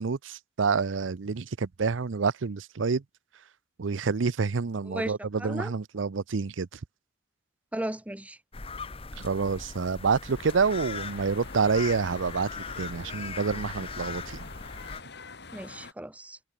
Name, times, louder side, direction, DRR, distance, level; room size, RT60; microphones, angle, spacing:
voice 1, 0.0-3.0 3.8-6.8 9.1-14.4, right 5 dB, 80° right, 0.6 m, -28 dB
voice 2, 5.4-5.7 7.7-8.4 15.5-16.4, right 1 dB, 5° right, 0.7 m, -35 dB
sound 1, 8.5-15.0, left 4 dB, 30° left, 1.1 m, -40 dB
sound 2, 10.3-15.9, left 3 dB, 60° left, 2.6 m, -45 dB
head